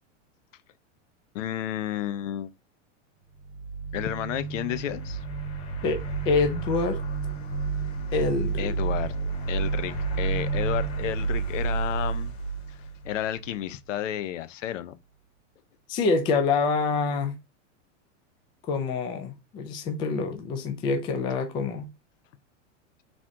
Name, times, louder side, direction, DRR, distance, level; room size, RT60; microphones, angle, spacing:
voice 1, 1.3-2.5 3.9-5.2 8.6-9.1 9.5-12.4 12.7-14.9, left 12 dB, 80° left, 0.7 m, -32 dB
sound 1, 3.4-13.6, right 4 dB, 55° left, 2.2 m, -30 dB
voice 2, 5.8-7.0 8.1-8.7 15.9-17.4 18.7-21.9, left 4 dB, 15° left, 0.3 m, -26 dB
4.1 x 3.0 x 3.6 m
supercardioid pair, 155°, 37 cm